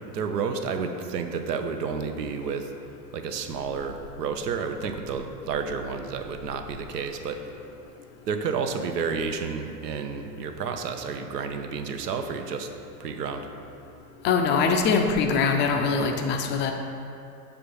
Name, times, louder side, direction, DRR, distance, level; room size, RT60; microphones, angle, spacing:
voice 1, 0.1-2.7 3.1-7.7 8.3-12.7 13.0-13.5, right 5 dB, 75° right, 6 dB, 0.7 m, -31 dB
voice 2, 14.2-16.7, left 5 dB, 25° left, 4 dB, 0.4 m, -23 dB
6.8 x 3.4 x 5.3 m, 2.5 s
hypercardioid pair, 95°, 48 cm